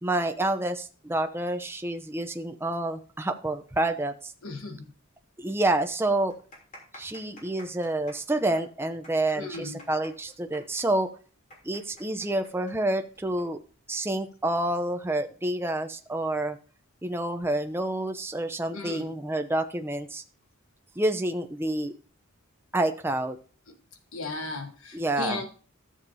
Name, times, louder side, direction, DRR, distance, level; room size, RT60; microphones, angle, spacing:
voice 1, 0.0-4.3 5.4-6.3 6.9-11.1 11.6-13.6 13.9-16.6 17.0-20.2 21.0-21.9 22.7-23.4 24.9-25.4, right 1 dB, 10° right, 6 dB, 0.6 m, -28 dB
voice 2, 4.4-4.9 9.3-9.8 18.7-19.2 23.7-23.8 24.1-25.5, left 3 dB, 70° left, 6 dB, 1.4 m, -35 dB
sound 1, 6.3-13.4 13.7-13.8 14.6-14.8, left 1 dB, 35° left, 3.1 m, -50 dB
13.5 x 7.3 x 2.7 m, 0.39 s
head